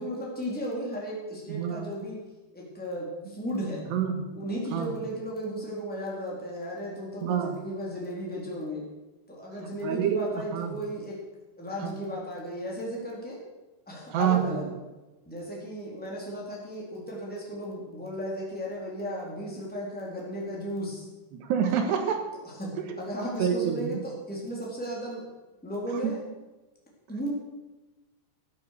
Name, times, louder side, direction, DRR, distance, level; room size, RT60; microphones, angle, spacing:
voice 1, 0.0-2.2 2.5-3.9 4.3-8.8 9.3-11.2 11.6-13.4 13.9-14.7 15.3-21.0 22.6-25.2 25.6-26.2 27.1-27.3, equal, ahead, -4 dB, 3.0 m, -35 dB
voice 2, 1.5-1.9 3.9-4.4 4.7-4.9 7.2-7.6 9.8-10.2 10.5-10.8 11.8-12.0 14.1-14.4 21.3-22.2 22.9-23.0 23.4-24.0, right 8 dB, 70° right, 5 dB, 3.3 m, -27 dB
13.0 x 9.6 x 6.7 m, 1.1 s
omnidirectional pair, 5.4 m